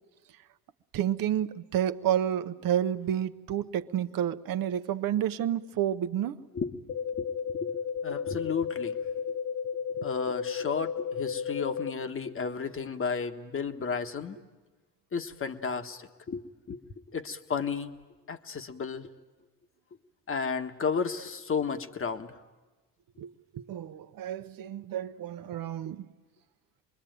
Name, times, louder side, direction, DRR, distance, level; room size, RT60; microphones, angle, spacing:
voice 1, 0.9-6.4 23.2-26.1, right 10 dB, 55° right, 1.0 m, -30 dB
voice 2, 6.5-9.0 10.0-14.4 15.1-16.8 17.1-17.9 18.3-19.1 20.3-22.4, left 5 dB, 30° left, 1.4 m, -33 dB
sound 1, 6.9-11.9, left 7 dB, 65° left, 1.2 m, -33 dB
26.0 x 21.5 x 9.2 m
supercardioid pair, 80°, 41 cm